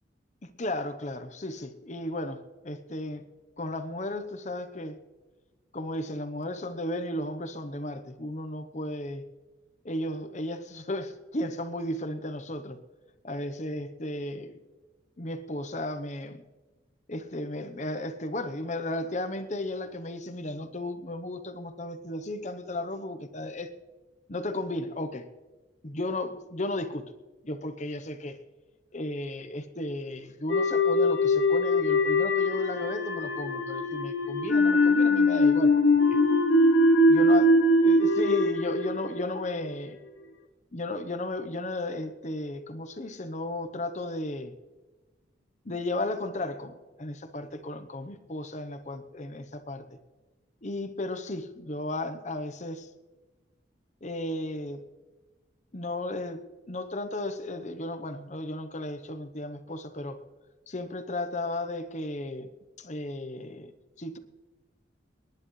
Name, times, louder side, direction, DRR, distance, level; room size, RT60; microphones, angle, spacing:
voice 1, 0.6-3.2 3.6-5.0 5.7-9.2 9.8-12.8 13.2-14.6 15.2-16.4 17.1-23.7 24.3-25.3 25.8-27.1 27.4-28.4 28.9-35.7 36.1-36.2 37.1-37.5 37.8-40.0 40.7-44.5 45.6-50.0 50.6-52.9 54.0-54.8 55.7-60.2 60.7-62.5 62.8-63.7 64.0-64.2, left 1 dB, 40° left, 9 dB, 0.9 m, -34 dB
sound 1, 30.5-39.7, left 1 dB, 75° left, 1.1 m, -22 dB
28.5 x 10.5 x 3.2 m, 1.2 s
head